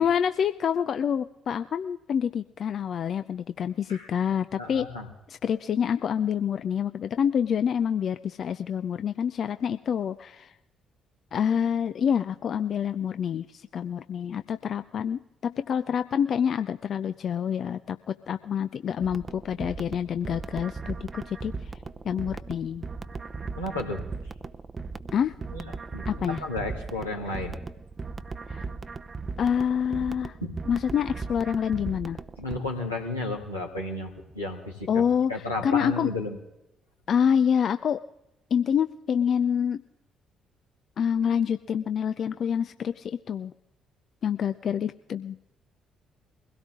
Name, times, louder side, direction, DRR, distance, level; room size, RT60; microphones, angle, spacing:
voice 1, 0.0-4.9 5.3-10.5 11.3-21.7 22.0-22.9 25.1-25.3 26.1-26.4 28.5-28.7 29.4-30.4 30.7-32.2 34.9-35.3 35.6-36.1 37.1-38.0 38.5-39.8 41.0-43.5 44.2-45.4, left 8 dB, 50° left, 11 dB, 0.5 m, -27 dB
voice 2, 4.6-5.1 23.6-24.0 25.5-27.6 30.4-30.5 32.4-35.0 35.3-36.4, left 2 dB, 90° left, -4 dB, 2.3 m, -33 dB
sound 1, 19.0-32.6, right 4 dB, 30° right, 0.7 m, -38 dB
22.5 x 17.0 x 3.7 m, 0.88 s
figure-of-eight pair, 45°, 0 cm